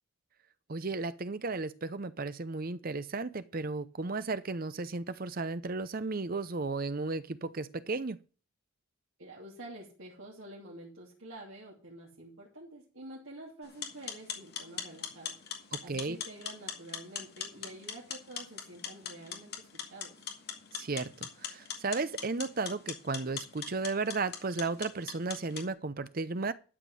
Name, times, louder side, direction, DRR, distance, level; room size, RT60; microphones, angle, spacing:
voice 1, 0.7-8.2 15.9-16.2 20.7-26.5, right 3 dB, 40° right, 0.7 m, -34 dB
voice 2, 9.2-15.4 15.8-20.3, right 1 dB, 65° right, 2.9 m, -48 dB
sound 1, 13.7-25.7, left 7 dB, 50° left, 2.1 m, -42 dB
12.5 x 5.2 x 7.6 m
head